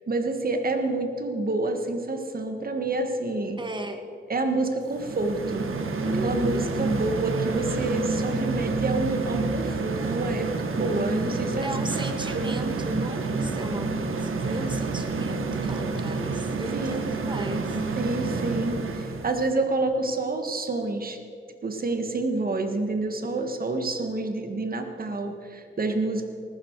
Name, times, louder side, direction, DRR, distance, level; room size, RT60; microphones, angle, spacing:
voice 1, 0.1-3.6 4.3-5.7 6.2-11.7 12.3-12.5 16.7-16.9 18.0-21.2 21.6-26.3, right 2 dB, 45° right, 6 dB, 1.6 m, -28 dB
voice 2, 3.6-4.0 6.1-6.7 11.6-17.8, right 2 dB, 25° right, 7 dB, 1.4 m, -35 dB
sound 1, 4.9-19.4, right 3 dB, 85° right, 1.4 m, -29 dB
19.0 x 15.0 x 4.7 m, 2.5 s
wide cardioid pair, 140°, 21 cm